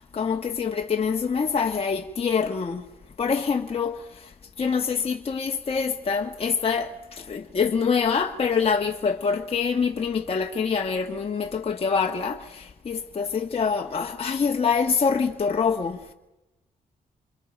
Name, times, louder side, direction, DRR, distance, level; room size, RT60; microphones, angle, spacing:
voice 1, 0.0-2.8 3.2-4.3 4.6-16.0, left 5 dB, 40° left, 1.4 m, -25 dB
28.5 x 27.0 x 5.2 m
cardioid pair, 105°, 15 cm